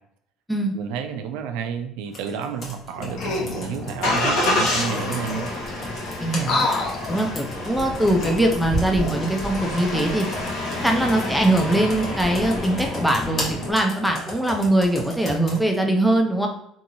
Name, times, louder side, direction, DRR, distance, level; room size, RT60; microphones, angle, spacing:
voice 1, 0.7-5.5, right 7 dB, 90° right, 7 dB, 0.3 m, -30 dB
Computer keyboard, 2.1-15.6, equal, 40° left, 0.9 m, -35 dB
Engine starting, 3.0-13.7, left 2 dB, 75° left, 1.1 m, -28 dB
sound 1, 3.2-3.7 4.5-4.6 4.8-5.7 6.4-7.4 8.0-9.5 10.0-10.2, left 3 dB, 55° left, 0.5 m, -29 dB
voice 2, 6.2-6.7 7.1-10.3 10.8-16.5, right 1 dB, ahead, 2 dB, 0.3 m, -22 dB
2.6 x 2.6 x 2.8 m, 0.72 s
cardioid pair, 125°, 0 cm